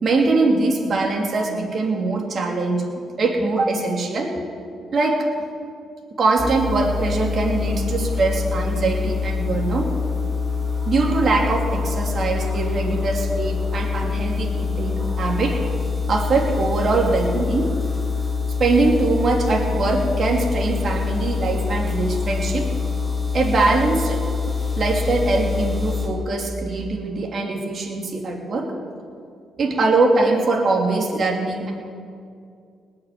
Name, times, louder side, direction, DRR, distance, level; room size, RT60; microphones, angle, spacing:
voice 1, 0.0-2.8 3.2-4.3 4.9-5.2 6.2-9.9 10.9-15.6 16.1-17.7 18.6-22.7 23.3-24.2 24.7-28.7 29.6-31.7, right 3 dB, 50° right, 0 dB, 2.9 m, -22 dB
sound 1, 6.4-26.1, left 5 dB, ahead, 4.4 m, -25 dB
19.0 x 6.8 x 9.5 m, 2.3 s
cardioid pair, 90°, 0 cm